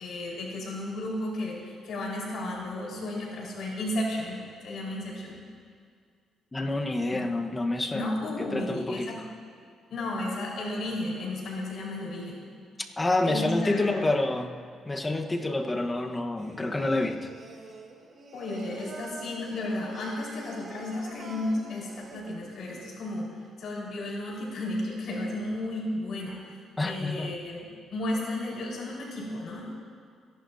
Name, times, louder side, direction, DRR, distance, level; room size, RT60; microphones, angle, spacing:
voice 1, 0.0-4.4 4.6-5.4 7.1-7.3 7.9-9.2 9.9-12.5 13.2-14.1 18.3-26.6 26.8-29.7, left 1 dB, 65° left, -3 dB, 4.5 m, -33 dB
voice 2, 6.5-8.1 8.4-9.3 13.0-14.6 14.9-17.3 26.8-27.3, left 2 dB, 20° left, 4 dB, 1.2 m, -28 dB
Singing, 16.4-22.9, right 3 dB, 50° right, 1.9 m, -46 dB
29.0 x 11.5 x 2.8 m, 2.1 s
cardioid pair, 90°, 0 cm